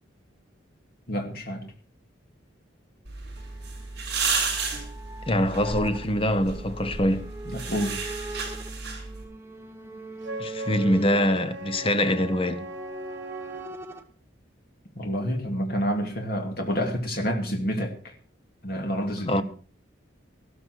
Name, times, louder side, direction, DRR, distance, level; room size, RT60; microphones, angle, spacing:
voice 1, 1.1-1.7 7.4-8.0 14.9-18.1 18.6-19.4, equal, 50° left, 2.7 m, -28 dB
sound 1, 3.1-9.2, right 4 dB, 55° right, 7.1 m, -32 dB
sound 2, 3.4-14.0, right 2 dB, 15° right, 1.2 m, -42 dB
voice 2, 5.3-7.3 10.4-12.7 19.3-19.4, left 1 dB, 30° left, 0.9 m, -24 dB
Wind instrument woodwind instrument, 10.2-13.8, right 1 dB, 75° right, 1.6 m, -39 dB
14.5 x 13.5 x 4.7 m
head